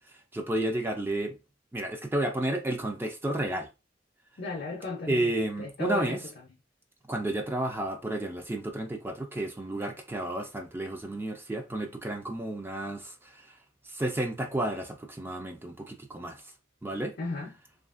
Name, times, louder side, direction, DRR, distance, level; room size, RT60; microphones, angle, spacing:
voice 1, 0.3-1.4 1.7-3.7 5.1-6.2 7.1-13.6 13.8-16.4 16.8-17.2, right 1 dB, 10° right, 0.4 m, -31 dB
voice 2, 4.4-6.2 17.2-17.5, left 3 dB, 50° left, 0.5 m, -35 dB
2.8 x 2.4 x 2.4 m
head